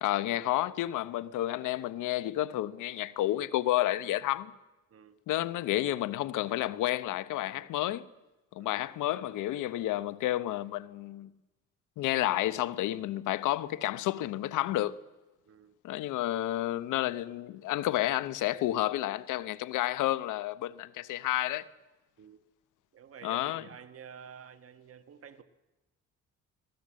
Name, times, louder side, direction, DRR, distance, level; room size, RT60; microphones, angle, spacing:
voice 1, 0.0-4.5 5.3-8.1 8.5-11.3 12.0-14.9 15.8-21.6 23.2-23.6, left 14 dB, 90° left, 0.9 m, -30 dB
voice 2, 15.5-15.8 22.2-22.4 22.9-25.4, right 7 dB, 50° right, 1.5 m, -50 dB
24.5 x 17.0 x 7.6 m
cardioid pair, 90°, 30 cm